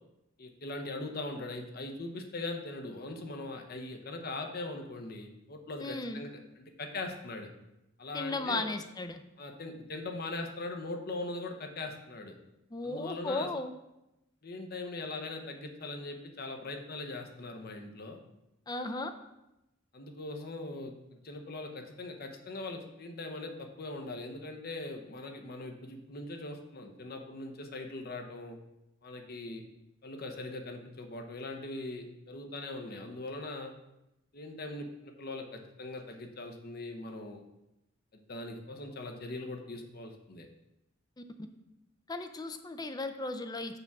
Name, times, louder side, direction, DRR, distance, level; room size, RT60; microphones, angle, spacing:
voice 1, 0.4-7.5 8.0-8.7 9.4-12.4 12.8-13.5 14.4-18.2 19.9-20.9 21.2-28.6 29.0-29.6 30.0-33.7 34.3-37.4 38.3-40.5, left 2 dB, 50° left, 4 dB, 0.8 m, -40 dB
voice 2, 5.8-6.2 8.1-9.2 12.7-13.7 18.7-19.1 42.1-43.8, left 2 dB, 20° left, 8 dB, 0.4 m, -35 dB
6.8 x 3.6 x 5.9 m, 0.89 s
head